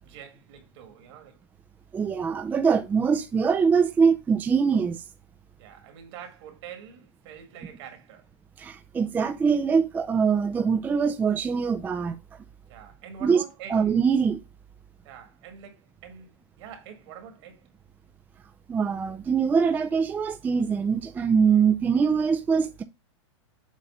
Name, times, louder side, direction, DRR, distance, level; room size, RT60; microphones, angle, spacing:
voice 1, 0.0-1.4 5.6-8.3 12.7-13.9 15.0-17.7, right 8 dB, 65° right, 1.8 m, -45 dB
voice 2, 1.9-5.0 8.6-12.2 13.2-13.4 13.7-14.4 18.7-22.8, right 6 dB, 10° right, 0.3 m, -23 dB
7.3 x 2.6 x 5.5 m
hypercardioid pair, 125°, 15 cm